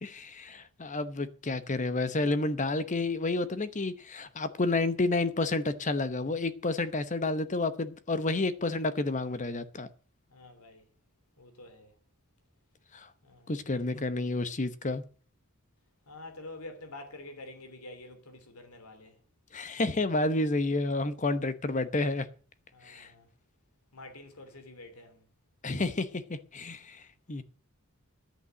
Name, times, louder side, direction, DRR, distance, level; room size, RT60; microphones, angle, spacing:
voice 1, 0.0-9.9 12.9-13.1 13.5-15.0 19.5-22.3 22.9-23.1 25.6-27.0 27.3-27.4, left 2 dB, 35° left, 0.9 m, -30 dB
voice 2, 10.3-10.8 11.4-11.9 13.2-13.5 16.1-19.1 22.7-23.3 23.9-25.2, left 2 dB, 90° left, 3.0 m, -47 dB
10.5 x 8.4 x 7.7 m
head